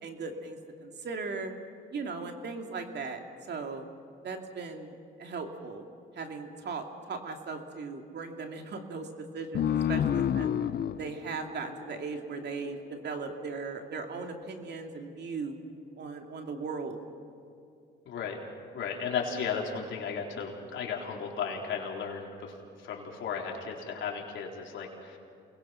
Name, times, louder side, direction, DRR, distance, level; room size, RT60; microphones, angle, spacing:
voice 1, 0.0-1.5 1.9-3.2 3.5-3.9 4.2-5.8 6.1-9.1 9.3-10.5 10.9-15.6 16.0-17.0, right 4 dB, 60° right, 3 dB, 2.6 m, -38 dB
sound 1, 9.5-12.7, left 9 dB, 55° left, 0.7 m, -30 dB
voice 2, 18.1-18.4 18.7-22.5 22.8-25.2, left 6 dB, 75° left, -1 dB, 4.0 m, -35 dB
28.5 x 21.0 x 5.8 m, 2.5 s
cardioid pair, 90°, 20 cm